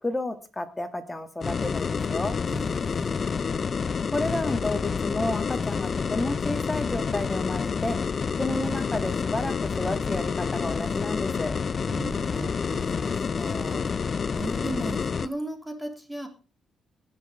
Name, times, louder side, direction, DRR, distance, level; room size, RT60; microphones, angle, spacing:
voice 1, 0.0-2.4 4.1-8.0 8.4-11.5, left 2 dB, 15° left, 8 dB, 2.2 m, -31 dB
sound 1, 1.4-15.3, left 5 dB, 40° left, 0.5 m, -28 dB
voice 2, 2.5-3.5 11.8-13.8 14.3-16.3, right 1 dB, ahead, 4 dB, 3.5 m, -37 dB
18.5 x 6.8 x 5.2 m, 0.34 s
cardioid pair, 90°, 0 cm